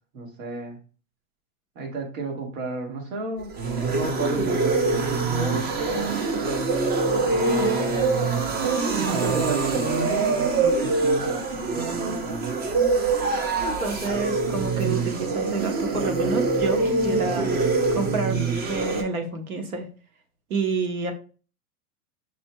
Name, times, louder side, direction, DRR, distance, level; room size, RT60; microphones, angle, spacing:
voice 1, 0.1-0.8 1.8-3.5 3.9-6.2 7.2-8.5 8.9-12.5, right 3 dB, 70° right, 1 dB, 1.8 m, -32 dB
sound 1, 3.4-19.0, right 3 dB, 25° right, 0.5 m, -24 dB
voice 2, 13.6-19.9 20.5-21.1, right 4 dB, 90° right, 6 dB, 1.1 m, -29 dB
6.1 x 2.7 x 2.2 m, 0.37 s
hypercardioid pair, 115°, 42 cm